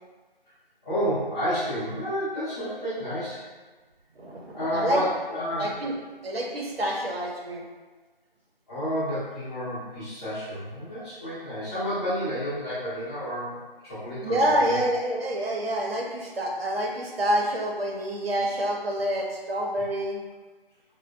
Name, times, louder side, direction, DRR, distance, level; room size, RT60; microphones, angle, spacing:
voice 1, 0.8-3.4 4.5-5.7 8.7-15.1, equal, 25° left, -17 dB, 0.8 m, -30 dB
voice 2, 4.7-5.0 5.6-6.0 6.2-7.6 14.2-20.2, right 1 dB, 85° right, -1 dB, 0.7 m, -27 dB
3.5 x 2.1 x 2.3 m, 1.3 s
figure-of-eight pair, 165°, 29 cm